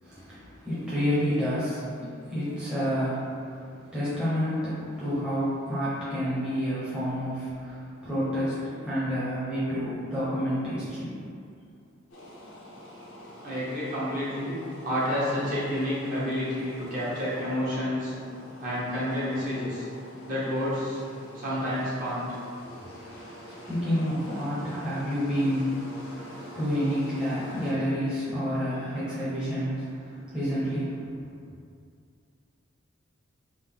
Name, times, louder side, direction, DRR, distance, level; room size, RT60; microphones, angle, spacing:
voice 1, 0.0-11.2 22.7-31.4, equal, 5° right, -13 dB, 0.9 m, -29 dB
sound 1, 12.1-27.7, equal, 85° left, 0.8 m, -46 dB
voice 2, 13.4-14.6 14.8-18.1 18.6-19.9 20.3-21.0 21.3-22.3, equal, 40° right, -10 dB, 1.2 m, -29 dB
3.6 x 2.6 x 3.6 m, 2.3 s
head